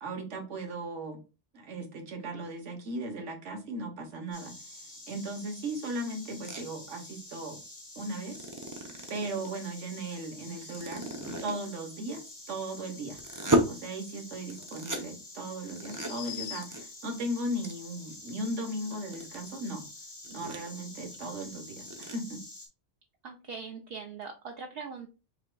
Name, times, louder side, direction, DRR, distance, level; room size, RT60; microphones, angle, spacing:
voice 1, 0.0-1.2 1.5-4.5 5.1-7.6 8.0-8.4 9.1-11.1 11.4-12.2 12.5-13.2 13.7-19.8 20.3-22.4, right 1 dB, 85° right, 4 dB, 1.4 m, -37 dB
Insect, 4.3-22.7, left 2 dB, 35° left, 1.8 m, -48 dB
sound 1, 6.4-6.6 8.3-9.5 10.5-11.6 13.1-13.6 14.5-15.0 15.7-16.1 16.5-16.8 17.1-17.2 17.6-17.7 18.1-18.2 18.7-19.4 19.8-19.9 20.2-20.7 21.1-21.2 21.4-21.5 21.8-22.1, right 1 dB, 20° right, 0.5 m, -31 dB
sound 2, 10.4-11.5 14.6-14.7 15.7-17.0, left 9 dB, 65° left, 0.8 m, -44 dB
voice 2, 23.2-25.1, right 5 dB, 60° right, 3 dB, 0.8 m, -41 dB
5.6 x 3.5 x 2.2 m, 0.31 s
omnidirectional pair, 1.2 m